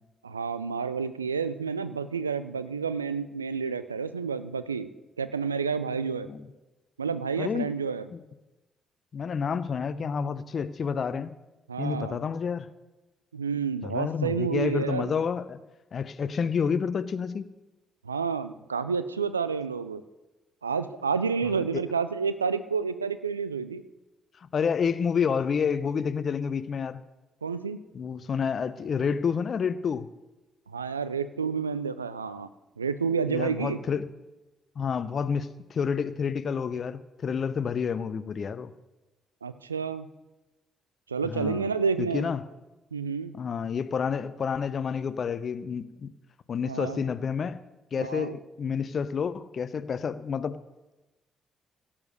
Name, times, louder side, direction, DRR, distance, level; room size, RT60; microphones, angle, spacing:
voice 1, 0.2-4.9 5.2-6.3 7.0-8.1 11.7-12.2 13.3-15.2 18.0-20.0 20.6-23.8 27.4-27.8 30.7-32.5 32.8-33.8 39.4-40.1 41.1-42.3 42.9-43.3 46.7-47.0 48.0-48.4, right 5 dB, 85° right, 13 dB, 0.4 m, -30 dB
voice 2, 7.4-7.7 8.1-8.2 9.1-11.4 11.8-12.7 13.8-15.6 15.9-17.4 21.4-21.9 24.4-27.0 27.9-30.1 33.3-34.1 34.8-38.7 41.2-41.7 42.0-42.4 43.3-46.1 46.5-47.6 47.9-50.6, left 6 dB, 45° left, 15 dB, 0.7 m, -29 dB
16.5 x 7.3 x 6.5 m, 1.0 s
figure-of-eight pair, 45°, 0 cm